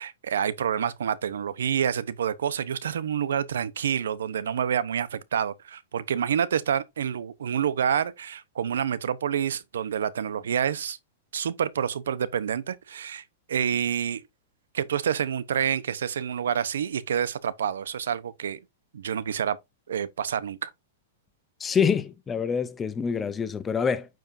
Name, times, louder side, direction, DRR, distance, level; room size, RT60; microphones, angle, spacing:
voice 1, 0.0-11.0 11.3-14.2 14.7-18.6 18.9-19.6 19.9-20.7, right 8 dB, 85° right, 0.8 m, -28 dB
voice 2, 21.6-24.1, left 6 dB, 15° left, 0.5 m, -26 dB
9.1 x 5.1 x 2.6 m
hypercardioid pair, 155°, 0 cm